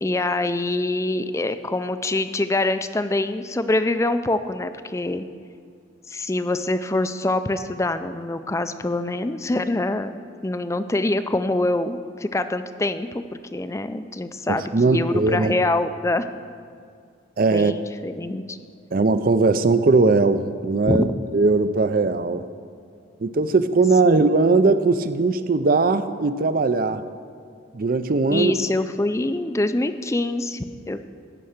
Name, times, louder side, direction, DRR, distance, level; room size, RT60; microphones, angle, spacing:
voice 1, 0.0-5.2 6.1-13.2 13.5-16.3 17.5-18.6 20.9-21.1 24.0-24.2 28.3-31.1, left 2 dB, 15° left, 11 dB, 0.4 m, -25 dB
voice 2, 14.5-15.5 17.4-17.7 18.9-21.1 21.3-22.4 23.2-27.0 27.7-28.5, right 3 dB, 50° right, 12 dB, 0.5 m, -19 dB
16.0 x 5.6 x 6.5 m, 2.2 s
head